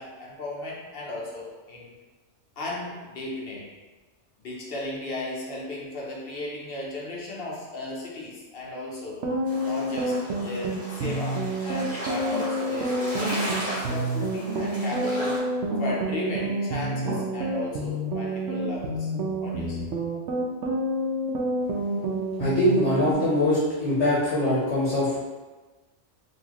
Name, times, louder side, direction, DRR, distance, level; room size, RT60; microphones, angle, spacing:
voice 1, 0.0-1.9 2.6-3.7 4.4-9.2 9.6-15.4 15.8-19.1 19.4-19.9, left 2 dB, 55° left, -4 dB, 0.9 m, -35 dB
sound 1, 9.1-23.1, right 1 dB, 85° right, 0.9 m, -28 dB
sound 2, 9.5-15.4, equal, 5° right, 1.1 m, -36 dB
sound 3, 11.0-11.4 12.1-12.8 13.2-13.6 14.5-14.8 15.7-16.1 16.9-17.3, right 1 dB, 55° right, 0.8 m, -36 dB
voice 2, 22.4-25.2, left 1 dB, 70° left, -7 dB, 1.2 m, -23 dB
4.2 x 2.7 x 2.9 m, 1.2 s
omnidirectional pair, 1.2 m